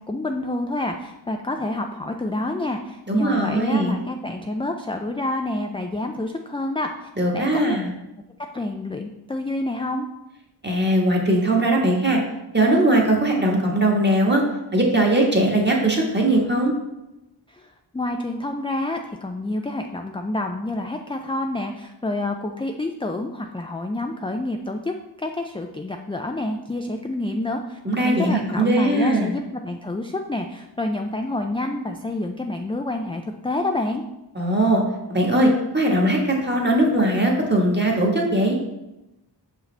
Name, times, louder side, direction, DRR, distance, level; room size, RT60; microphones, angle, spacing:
voice 1, 0.1-7.8 8.5-10.1 17.5-34.0, left 2 dB, 15° left, 3 dB, 0.3 m, -28 dB
voice 2, 3.1-4.0 7.2-7.9 10.6-12.2 12.5-14.4 14.7-16.7 27.8-29.3 34.3-34.8 35.1-38.6, right 1 dB, 25° right, -1 dB, 1.4 m, -20 dB
6.4 x 4.8 x 3.3 m, 0.96 s
wide cardioid pair, 60°, 44 cm